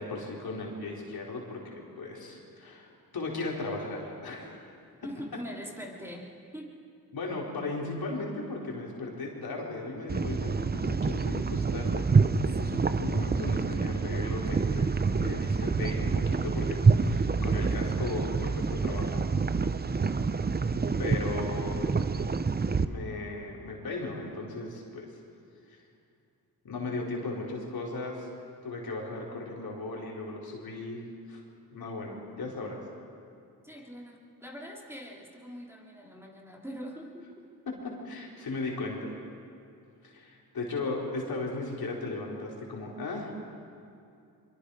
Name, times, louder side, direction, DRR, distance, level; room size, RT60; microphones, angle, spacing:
voice 1, 0.0-4.6 7.1-12.1 12.4-19.3 21.0-21.8 22.9-25.1 26.6-28.3 28.6-31.0 31.3-31.4 31.7-32.8 37.7-39.2 40.0-43.3, left 3 dB, 65° left, -3 dB, 4.5 m, -36 dB
voice 2, 5.0-6.3 6.5-6.7 12.6-12.8 33.6-37.2, equal, 5° right, -2 dB, 3.4 m, -42 dB
sound 1, 10.1-22.8, right 4 dB, 25° right, 0.8 m, -27 dB
24.0 x 23.5 x 5.0 m, 2.5 s
cardioid pair, 70°, 38 cm